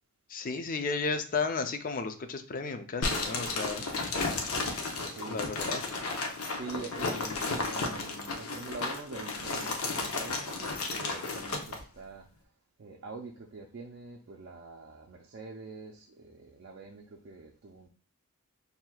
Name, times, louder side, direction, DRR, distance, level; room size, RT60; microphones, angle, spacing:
voice 1, 0.3-3.8 5.3-5.9, left 4 dB, 40° left, 8 dB, 0.5 m, -33 dB
sound 1, 3.0-11.8, left 3 dB, 90° left, 0.7 m, -33 dB
voice 2, 5.1-5.4 6.5-12.3 12.8-17.9, right 3 dB, 55° right, 0 dB, 0.4 m, -45 dB
5.7 x 2.7 x 2.3 m, 0.38 s
head